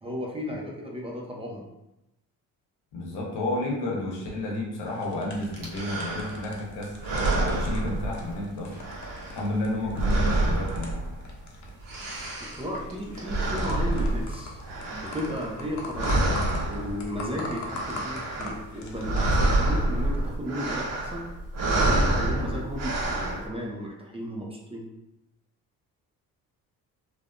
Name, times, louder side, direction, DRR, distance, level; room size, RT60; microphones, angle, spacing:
voice 1, 0.0-1.7 12.4-14.6 14.9-16.4 16.7-21.3 21.6-24.9, equal, 15° right, -2 dB, 0.6 m, -34 dB
voice 2, 2.9-8.7 9.3-10.9, left 1 dB, 80° left, -2 dB, 1.0 m, -31 dB
sound 1, 4.9-19.5, left 2 dB, 45° left, 0.7 m, -42 dB
sound 2, 5.6-6.5 6.9-8.5 8.8-11.4 11.7-15.7 15.9-17.2 17.5-18.6 18.9-23.5, right 2 dB, 55° right, 1.0 m, -27 dB
3.2 x 2.1 x 2.5 m, 0.92 s
supercardioid pair, 75°, 39 cm